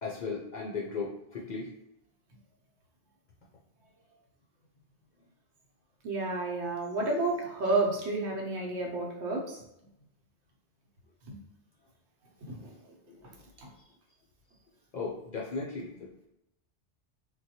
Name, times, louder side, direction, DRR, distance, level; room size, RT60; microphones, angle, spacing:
voice 1, 0.0-1.7 13.1-13.2 14.9-16.3, left 4 dB, 55° left, -3 dB, 0.5 m, -36 dB
voice 2, 6.0-9.6 11.3-11.4 12.5-12.7, right 2 dB, 75° right, 0 dB, 1.0 m, -30 dB
3.7 x 2.3 x 2.7 m, 0.82 s
omnidirectional pair, 1.2 m